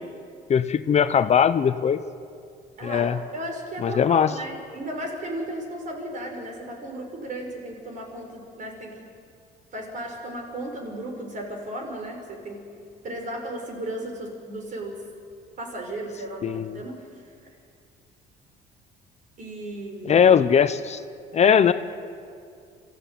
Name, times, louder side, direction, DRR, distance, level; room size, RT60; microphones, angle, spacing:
voice 1, 0.5-2.0 2.8-3.2 3.8-4.3 16.4-16.8 20.0-21.0 21.3-21.7, left 7 dB, 40° left, 12 dB, 0.8 m, -19 dB
voice 2, 2.8-9.0 9.7-12.6 13.0-15.0 15.6-17.0 19.4-20.3 21.4-21.6, right 1 dB, 50° right, 2 dB, 5.9 m, -35 dB
26.0 x 15.0 x 9.3 m, 2.3 s
cardioid pair, 110°, 17 cm